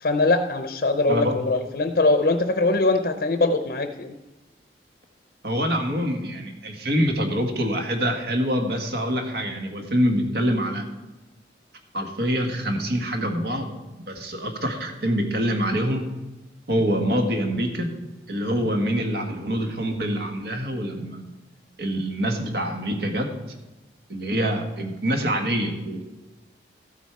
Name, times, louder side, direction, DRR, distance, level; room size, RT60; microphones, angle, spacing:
voice 1, 0.0-4.1, left 2 dB, 55° left, 8 dB, 0.6 m, -22 dB
voice 2, 5.4-10.8 11.9-13.7 14.1-16.0 16.7-17.9 18.3-21.2 21.8-23.3 24.1-26.0, equal, 70° right, 4 dB, 1.7 m, -25 dB
14.0 x 8.3 x 4.7 m, 1.1 s
head